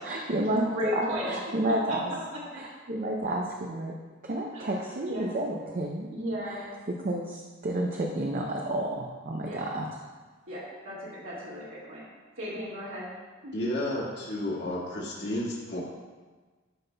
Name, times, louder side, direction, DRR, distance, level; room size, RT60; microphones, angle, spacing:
voice 1, 0.1-2.1 2.5-3.9 4.2-6.2 6.4-9.9, right 1 dB, 45° right, 0 dB, 0.6 m, -31 dB
voice 2, 0.7-1.4 1.9-2.0 2.3-2.6 4.5-4.7 5.0-5.3 6.1-6.7 9.4-9.6 10.5-12.0 12.4-13.1 13.4-13.5, equal, 75° right, -8 dB, 1.8 m, -35 dB
voice 3, 13.5-15.8, left 1 dB, 60° left, -6 dB, 1.8 m, -31 dB
11.5 x 5.2 x 2.2 m, 1.4 s
head